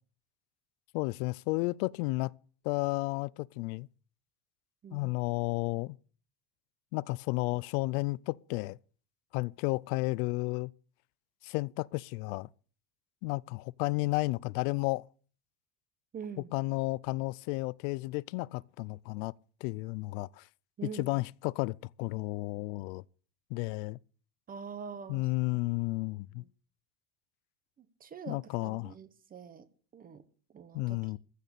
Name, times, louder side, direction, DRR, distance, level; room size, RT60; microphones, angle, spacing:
voice 1, 0.9-2.3 2.6-3.9 4.9-6.0 6.9-8.8 9.3-10.7 11.4-12.5 13.2-15.0 16.5-19.3 19.6-20.5 20.9-23.0 23.5-24.0 25.1-26.4 28.3-28.9 30.7-31.2, left 23 dB, 80° left, 0.6 m, -32 dB
voice 2, 16.1-16.5 20.8-21.2 24.5-25.3 26.3-26.5 27.8-29.7 29.9-30.2 30.5-31.2, right 6 dB, 20° right, 0.9 m, -45 dB
15.0 x 6.6 x 8.3 m
cardioid pair, 170°, 44 cm